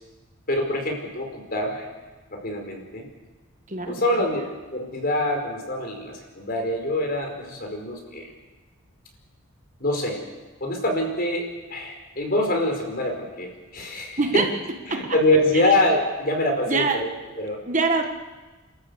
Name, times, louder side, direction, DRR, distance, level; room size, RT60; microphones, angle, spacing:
voice 1, 0.5-1.9 2.3-3.0 3.9-4.4 4.7-8.3 9.8-10.2 10.6-14.4 14.9-17.1 17.4-17.6, left 1 dB, 45° left, 2 dB, 4.9 m, -25 dB
voice 2, 14.2-14.5 14.9-15.1 15.5-15.8 16.7-17.0 17.7-18.0, right 3 dB, 35° right, 4 dB, 1.6 m, -23 dB
29.5 x 13.5 x 8.2 m, 1.2 s
head